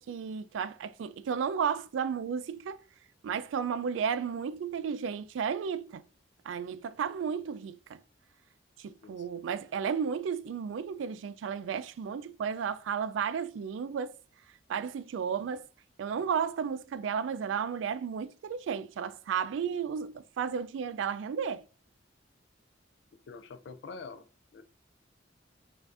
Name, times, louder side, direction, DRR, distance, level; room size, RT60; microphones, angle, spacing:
voice 1, 0.0-2.8 3.2-6.0 6.4-8.0 8.8-14.1 14.7-15.6 16.0-21.6, right 7 dB, 75° right, 0.3 m, -33 dB
voice 2, 23.1-24.3 24.5-24.6, left 4 dB, 65° left, 0.3 m, -45 dB
5.6 x 2.5 x 2.4 m
head